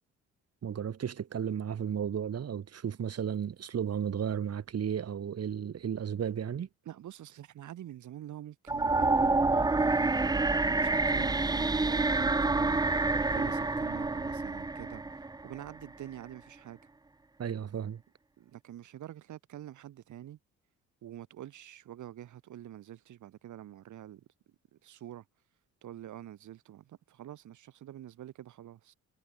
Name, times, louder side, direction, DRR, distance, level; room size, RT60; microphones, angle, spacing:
voice 1, 0.6-6.7 17.4-18.0, right 8 dB, 55° right, 6.3 m, -34 dB
voice 2, 6.9-16.8 18.4-20.4 21.0-24.3 24.7-25.2 25.8-28.9, right 12 dB, 75° right, 7.3 m, -46 dB
sound 1, 8.7-15.8, right 3 dB, 15° right, 0.8 m, -28 dB
cardioid pair, 90°, 30 cm